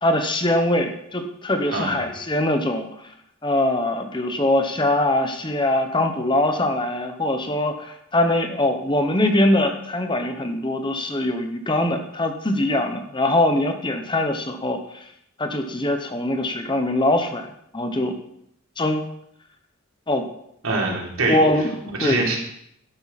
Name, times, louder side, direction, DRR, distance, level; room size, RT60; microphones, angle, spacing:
voice 1, 0.0-2.9 3.4-14.8 15.4-17.5 17.7-18.2 18.8-19.0 20.1-20.3 21.3-21.7 22.0-22.3, left 1 dB, 25° left, 6 dB, 1.1 m, -22 dB
voice 2, 1.7-2.0 20.6-21.7 22.0-22.4, right 2 dB, 80° right, -2 dB, 3.8 m, -24 dB
12.0 x 11.5 x 4.3 m, 0.73 s
head